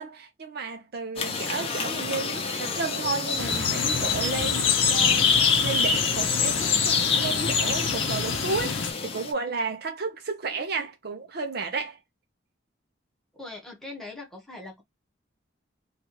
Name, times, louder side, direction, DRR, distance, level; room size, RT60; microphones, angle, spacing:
voice 1, 0.0-12.0, right 4 dB, 55° right, 0.7 m, -33 dB
sound 1, 1.2-9.3, left 5 dB, 30° left, 0.6 m, -26 dB
sound 2, 3.4-8.9, left 6 dB, 80° left, 0.7 m, -28 dB
voice 2, 13.3-14.8, left 2 dB, ahead, 1.0 m, -41 dB
3.1 x 2.4 x 2.8 m
head